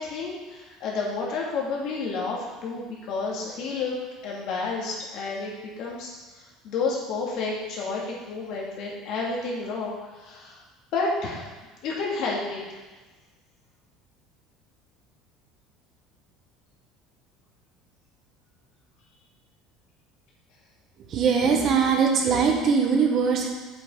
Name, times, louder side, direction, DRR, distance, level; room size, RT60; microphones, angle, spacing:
voice 1, 0.0-4.0 4.2-6.1 6.4-10.6 10.9-11.5 11.8-12.6, left 4 dB, 65° left, -3 dB, 2.4 m, -30 dB
voice 2, 21.1-23.5, right 6 dB, 45° right, 2 dB, 1.5 m, -21 dB
7.7 x 7.6 x 3.9 m, 1.2 s
supercardioid pair, 115°, 0 cm